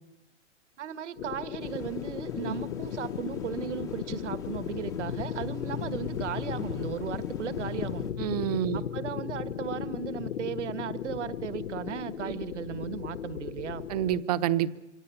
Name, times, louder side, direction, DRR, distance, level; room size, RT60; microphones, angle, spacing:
voice 1, 0.8-8.1 8.7-13.9, right 8 dB, 65° right, 14 dB, 1.6 m, -36 dB
sound 1, 1.2-14.2, left 9 dB, 75° left, 1.0 m, -36 dB
sound 2, 1.6-8.1, left 6 dB, 10° left, 0.9 m, -45 dB
voice 2, 8.2-8.8 12.2-12.3 13.9-14.8, right 11 dB, 30° right, 13 dB, 1.0 m, -28 dB
27.0 x 23.5 x 8.3 m, 0.94 s
hypercardioid pair, 165°, 37 cm